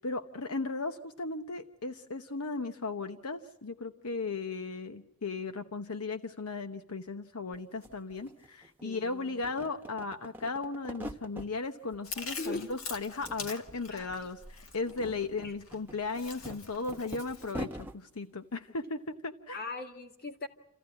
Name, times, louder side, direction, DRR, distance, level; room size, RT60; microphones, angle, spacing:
voice 1, 0.0-19.6, left 3 dB, 80° left, 8 dB, 1.0 m, -36 dB
sound 1, 7.5-7.6 7.8-9.0 9.3-11.5 11.9-12.7 12.9-13.8 14.0-14.2 14.7-18.0, equal, 10° right, 1.0 m, -44 dB
voice 2, 8.8-9.4 12.4-12.7 13.9-14.1 15.0-15.5 19.5-20.5, left 3 dB, 45° left, 4 dB, 2.1 m, -40 dB
Chewing mastication, 12.0-17.5, left 4 dB, 65° left, 2.1 m, -45 dB
28.5 x 14.5 x 9.7 m, 0.87 s
head